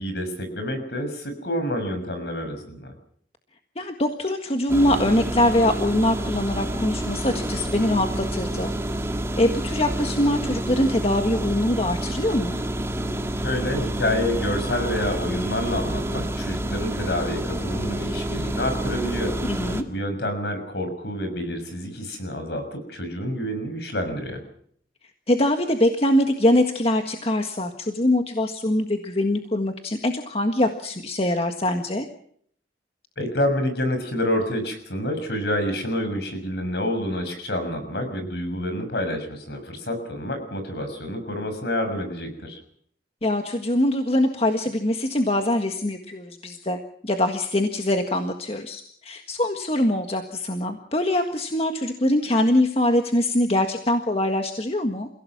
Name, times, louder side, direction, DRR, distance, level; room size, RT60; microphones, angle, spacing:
voice 1, 0.0-2.9 13.4-24.4 33.2-42.6, left 1 dB, 60° left, 8 dB, 6.4 m, -28 dB
voice 2, 3.7-8.7 9.4-12.6 19.5-19.8 25.3-32.1 43.2-55.1, left 1 dB, 35° left, 5 dB, 1.7 m, -23 dB
sound 1, 4.7-19.8, right 1 dB, 15° right, 1.9 m, -28 dB
30.0 x 17.0 x 6.1 m, 0.64 s
head